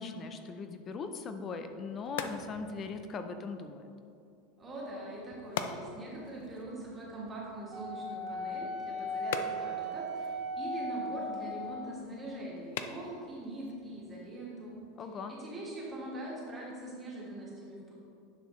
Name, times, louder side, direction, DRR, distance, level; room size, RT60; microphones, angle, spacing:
voice 1, 0.0-3.9 15.0-15.4, left 4 dB, 20° left, 8 dB, 0.4 m, -40 dB
sound 1, 1.6-15.1, left 7 dB, 75° left, 0.5 m, -45 dB
voice 2, 4.6-14.8 15.3-17.9, right 1 dB, 15° right, -5 dB, 1.6 m, -42 dB
Wind instrument woodwind instrument, 7.7-11.9, equal, 35° right, 1.3 m, -37 dB
10.5 x 6.4 x 3.1 m, 2.5 s
supercardioid pair, 180°, 0 cm